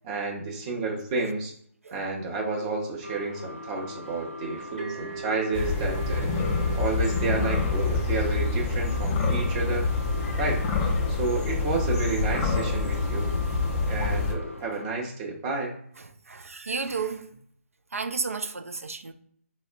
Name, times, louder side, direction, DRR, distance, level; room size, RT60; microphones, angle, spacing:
voice 1, 0.0-1.5 1.9-6.3 6.8-9.9 10.4-10.6 11.1-13.3 13.9-15.7, right 3 dB, 25° right, 0.6 m, -30 dB
sound 1, 3.0-14.9, left 1 dB, 60° left, 0.6 m, -41 dB
sound 2, 4.8-12.3, right 5 dB, 40° right, 1.0 m, -43 dB
sound 3, 5.5-14.3, left 3 dB, 15° left, 0.4 m, -26 dB
voice 2, 16.3-17.3 17.9-19.1, right 4 dB, 75° right, 0.4 m, -32 dB
4.1 x 2.1 x 2.5 m
figure-of-eight pair, 145°, 8 cm